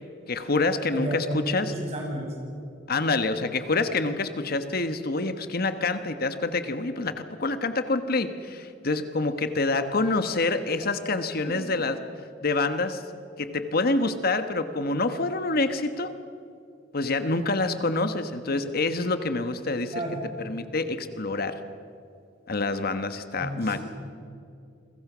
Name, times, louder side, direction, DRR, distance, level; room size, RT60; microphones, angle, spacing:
voice 1, 0.3-1.7 2.9-12.0 12.4-13.0 13.4-16.1 16.9-19.9 20.4-21.6 22.5-23.8, left 3 dB, 55° left, 9 dB, 1.3 m, -27 dB
voice 2, 0.9-2.3 11.4-11.7 19.9-20.3 23.4-23.8, right 1 dB, 35° right, -1 dB, 7.5 m, -32 dB
29.0 x 23.0 x 6.2 m, 2.5 s
head